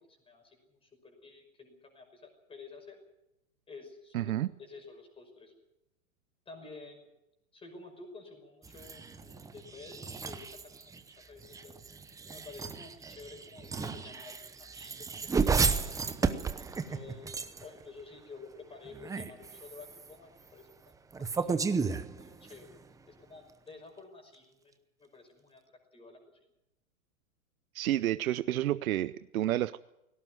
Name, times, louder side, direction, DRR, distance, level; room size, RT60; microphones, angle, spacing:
voice 1, 0.1-0.6 0.8-3.0 3.7-4.3 4.6-5.5 6.5-7.1 7.5-10.9 11.3-11.8 12.3-16.0 16.2-17.3 17.6-20.9 21.3-22.7 23.1-24.7 25.0-25.6 25.9-26.2, left 4 dB, 15° left, 5 dB, 5.7 m, -51 dB
voice 2, 4.1-4.5 27.7-29.8, right 13 dB, 80° right, 15 dB, 0.7 m, -30 dB
sound 1, 8.6-17.8 18.9-20.1 21.1-22.7, right 5 dB, 10° right, 0.8 m, -33 dB
18.0 x 17.5 x 9.4 m, 0.89 s
hypercardioid pair, 130°, 42 cm